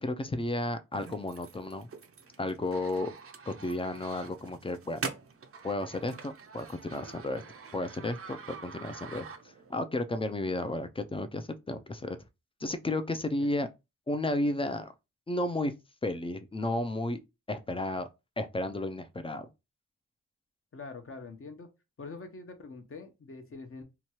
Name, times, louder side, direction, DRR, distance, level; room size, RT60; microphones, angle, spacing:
voice 1, 0.0-1.9 2.4-3.1 3.5-5.0 5.6-7.4 7.7-9.3 9.7-12.2 12.6-13.7 14.1-14.9 15.3-15.7 16.0-17.2 17.5-18.1 18.4-19.5, left 2 dB, 20° left, 0.4 m, -33 dB
sound 1, 0.9-9.8, right 5 dB, 50° right, 0.5 m, -45 dB
voice 2, 20.7-21.7 22.0-23.8, left 4 dB, 45° left, 0.8 m, -44 dB
2.9 x 2.3 x 2.9 m
cardioid pair, 65°, 30 cm